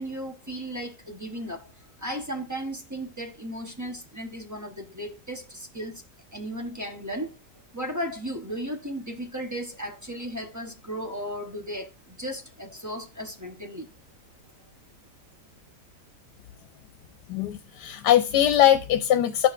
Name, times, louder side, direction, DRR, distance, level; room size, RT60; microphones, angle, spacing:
voice 1, 0.0-6.0 6.3-7.4 7.7-13.9, equal, 15° right, 0.7 m, -35 dB
voice 2, 17.3-19.5, left 11 dB, 85° left, 1.2 m, -21 dB
13.5 x 4.6 x 2.5 m
omnidirectional pair, 1.8 m